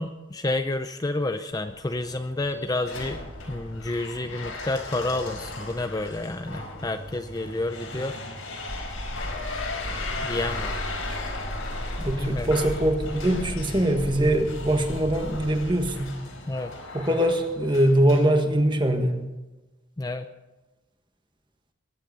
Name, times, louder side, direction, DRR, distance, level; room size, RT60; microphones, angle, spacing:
voice 1, 0.0-3.2 3.5-8.2 10.2-10.8 12.0-12.5 14.4-14.5 16.5-16.7 20.0-20.3, left 2 dB, 20° left, 7 dB, 0.5 m, -30 dB
sound 1, 1.5-19.0, left 2 dB, 90° left, 4.6 m, -37 dB
sound 2, 8.7-15.9, equal, 45° left, 1.9 m, -36 dB
voice 2, 12.0-16.2 16.9-19.2, right 1 dB, 20° right, 5 dB, 1.5 m, -22 dB
21.5 x 10.5 x 5.4 m, 1.1 s
head